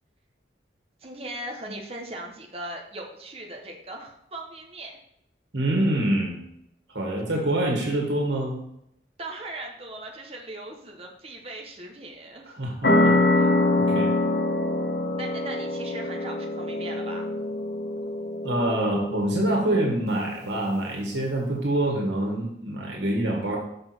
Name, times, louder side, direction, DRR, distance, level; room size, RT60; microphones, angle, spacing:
voice 1, 1.0-5.0 9.2-12.5 15.2-17.3, right 1 dB, 35° right, 0 dB, 1.1 m, -39 dB
voice 2, 5.5-6.4 6.9-8.5 12.5-13.5 13.9-14.1 18.4-23.6, right 1 dB, 90° right, -1 dB, 1.9 m, -26 dB
sound 1, 12.8-20.0, left 2 dB, 60° left, 1.1 m, -25 dB
6.3 x 6.2 x 4.5 m, 0.76 s
head